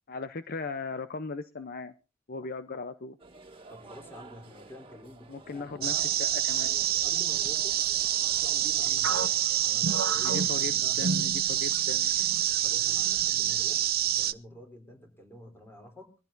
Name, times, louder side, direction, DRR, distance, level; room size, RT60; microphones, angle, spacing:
voice 1, 0.1-1.9 2.3-3.2 5.3-5.9 6.2-6.8 10.2-12.1, left 4 dB, 50° left, 10 dB, 0.7 m, -38 dB
sound 1, 3.2-9.5, right 3 dB, 30° right, 2.1 m, -51 dB
voice 2, 3.7-6.1 7.0-7.8 8.3-11.0 12.6-16.2, equal, 10° left, 4 dB, 3.4 m, -49 dB
sound 2, 5.8-14.3, right 12 dB, 50° right, 0.7 m, -27 dB
sound 3, 9.0-11.9 12.2-12.4 13.1-13.5, right 3 dB, 75° right, 0.9 m, -33 dB
22.5 x 15.0 x 2.7 m, 0.33 s
head